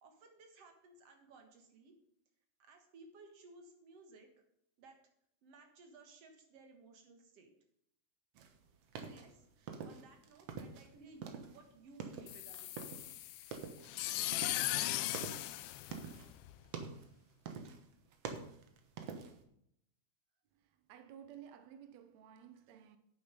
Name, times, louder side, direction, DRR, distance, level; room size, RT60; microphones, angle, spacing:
voice 1, 0.0-1.9 2.6-4.3 4.8-5.0 5.4-7.5 9.0-13.0, right 3 dB, 55° right, 2.0 m, -59 dB
sound 1, 8.4-10.9 11.2-13.2 13.4-13.9 14.3-16.3 16.6-17.1 17.5-17.9 18.1-19.4, right 6 dB, 70° right, 1.5 m, -46 dB
sound 2, 12.3-16.6, left 15 dB, 80° left, 2.4 m, -38 dB
voice 2, 20.9-23.0, right 9 dB, 90° right, 1.5 m, -54 dB
10.0 x 8.7 x 5.2 m
omnidirectional pair, 4.4 m